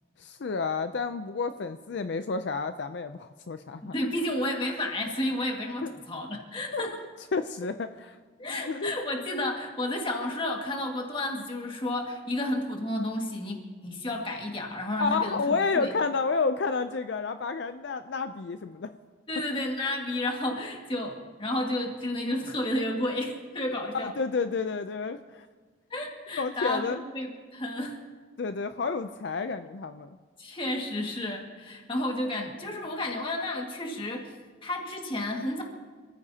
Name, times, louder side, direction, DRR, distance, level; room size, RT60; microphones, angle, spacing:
voice 1, 0.2-3.9 5.8-5.9 6.7-6.8 7.3-8.2 8.7-8.9 15.0-18.9 23.9-25.5 26.4-27.0 28.4-30.1, left 4 dB, 65° left, 9 dB, 0.5 m, -30 dB
voice 2, 3.8-7.1 8.4-15.9 19.3-24.1 25.9-28.0 30.4-34.4 34.6-35.6, left 1 dB, 25° left, 1 dB, 1.9 m, -31 dB
27.0 x 14.5 x 2.8 m, 1.5 s
head